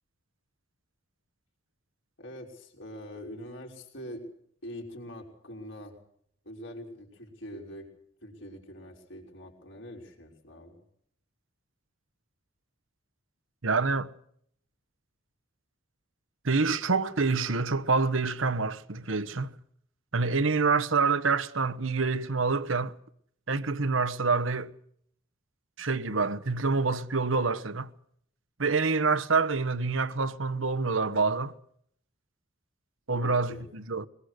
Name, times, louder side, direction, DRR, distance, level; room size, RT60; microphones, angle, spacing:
voice 1, 2.2-4.3 4.6-6.0 6.4-7.9 8.2-10.8 33.1-33.7, equal, 65° left, 5.7 m, -43 dB
voice 2, 13.6-14.1 16.4-19.5 20.1-22.9 23.5-24.7 25.8-27.9 28.6-31.5 33.1-34.1, right 4 dB, 80° right, 1.2 m, -27 dB
23.5 x 21.5 x 6.5 m
head